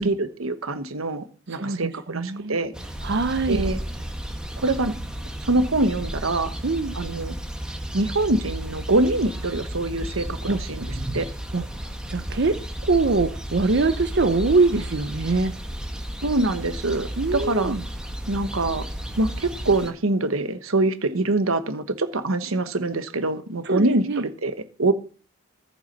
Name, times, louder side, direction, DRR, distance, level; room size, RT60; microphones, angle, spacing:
voice 1, 0.0-2.7 3.5-3.8 4.6-5.0 5.4-6.5 6.9-7.3 7.9-10.9 11.1-11.3 16.2-17.7 18.3-18.9 19.2-24.9, right 2 dB, 85° right, 10 dB, 1.2 m, -24 dB
voice 2, 1.5-2.6 3.0-3.6 6.6-6.9 10.5-10.6 11.5-11.6 12.1-12.6 12.8-15.5 17.2-17.8 23.6-24.2, right 3 dB, 55° right, 8 dB, 0.7 m, -23 dB
sound 1, 2.7-19.9, right 1 dB, 5° right, 1.3 m, -33 dB
14.5 x 6.1 x 5.3 m, 0.38 s
head